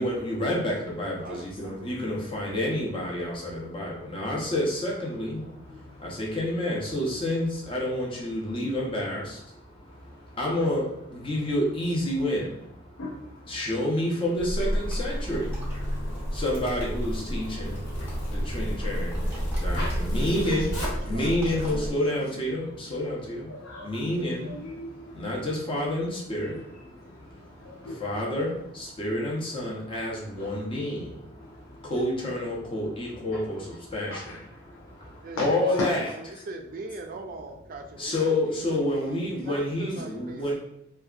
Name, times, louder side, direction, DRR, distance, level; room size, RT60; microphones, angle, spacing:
voice 1, 0.0-13.0 13.5-23.5 23.8-24.5 25.1-27.7 28.0-34.1 34.8-36.0 38.0-40.5, left 1 dB, 25° left, -3 dB, 0.6 m, -29 dB
voice 2, 1.1-1.5 20.4-21.3 21.6-21.9 35.2-35.8 36.5-40.5, right 3 dB, 45° right, 3 dB, 0.3 m, -40 dB
voice 3, 5.6-6.2 9.9-10.6 11.3-11.5 13.0-13.8 15.4-16.6 17.5-19.1 19.5-20.7 21.0-21.6 23.5-25.9 26.4-28.3 30.4-30.6 31.4-31.9 33.3-33.7 34.1-35.9, left 2 dB, 90° left, -2 dB, 0.4 m, -42 dB
Zipper (clothing), 14.4-21.9, equal, 60° left, 1.0 m, -30 dB
sound 1, 14.6-16.0 16.4-18.4 18.7-21.8, right 1 dB, 10° right, 0.7 m, -46 dB
2.6 x 2.2 x 2.3 m, 0.77 s
head